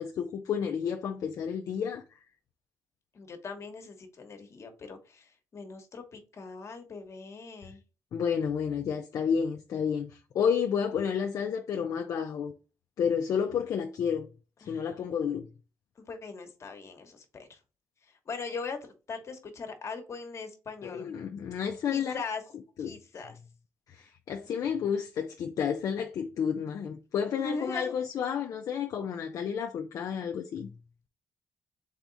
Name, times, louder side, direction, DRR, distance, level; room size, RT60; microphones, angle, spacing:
voice 1, 0.0-2.0 8.1-12.5 13.0-14.3 14.7-15.5 20.8-22.2 22.8-23.0 23.9-30.7, left 7 dB, 65° left, 0.4 m, -31 dB
voice 2, 3.1-7.8 14.6-14.8 16.0-17.6 18.0-21.2 21.9-22.4 22.8-23.3 24.4-24.5 27.4-27.9, left 4 dB, 50° left, 1.1 m, -40 dB
3.6 x 3.5 x 3.9 m
cardioid pair, 70°, 6 cm